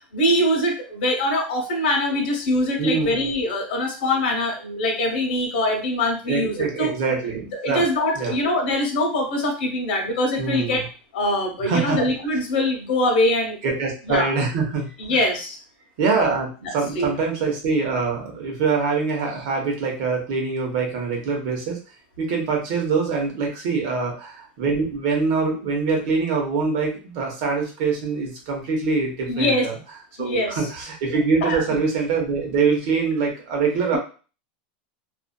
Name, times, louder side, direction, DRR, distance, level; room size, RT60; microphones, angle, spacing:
voice 1, 0.1-6.9 7.6-10.9 11.1-13.6 14.1-14.3 15.0-15.6 16.9-17.1 29.3-29.7 30.2-30.6 31.4-31.6, left 1 dB, 85° left, 2 dB, 0.9 m, -23 dB
voice 2, 2.8-3.3 6.3-7.8 8.1-8.3 10.4-10.8 11.6-12.0 13.6-15.2 16.0-21.8 22.2-29.7 30.2-34.0, right 4 dB, 50° right, 1 dB, 0.9 m, -24 dB
2.6 x 2.4 x 2.2 m, 0.36 s
supercardioid pair, 170°, 5 cm